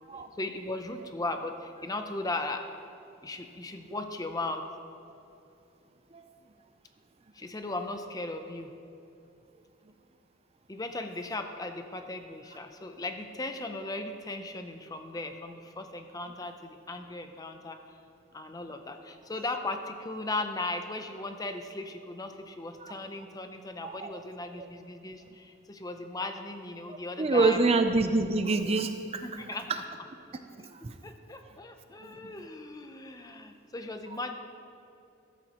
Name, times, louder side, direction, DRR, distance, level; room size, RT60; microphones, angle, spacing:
voice 1, 0.4-2.7 3.2-4.7 7.3-8.7 10.7-17.8 18.3-27.6 29.2-29.7 31.0-34.4, left 2 dB, 20° left, 6 dB, 0.5 m, -37 dB
voice 2, 26.9-29.4 29.7-29.8 30.7-30.9 32.0-32.3, right 3 dB, 30° right, 8 dB, 0.4 m, -27 dB
14.0 x 12.5 x 3.0 m, 2.7 s
head